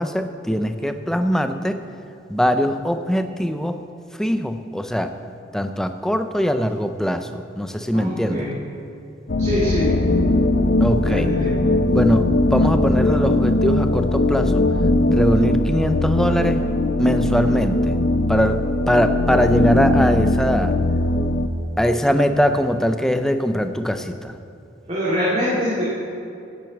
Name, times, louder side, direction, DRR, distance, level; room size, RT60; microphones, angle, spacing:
voice 1, 0.0-1.8 2.3-3.8 4.2-5.1 5.5-7.3 7.6-8.5 10.8-11.4 11.9-14.6 15.1-16.6 17.0-18.0 18.3-20.8 21.8-24.4, equal, 5° left, 8 dB, 0.5 m, -21 dB
voice 2, 7.9-8.5 9.4-9.9 11.0-11.6 24.9-25.8, equal, 35° right, -9 dB, 2.3 m, -24 dB
sound 1, 9.3-21.5, left 1 dB, 60° left, 0.7 m, -19 dB
10.5 x 9.0 x 7.2 m, 2.7 s
head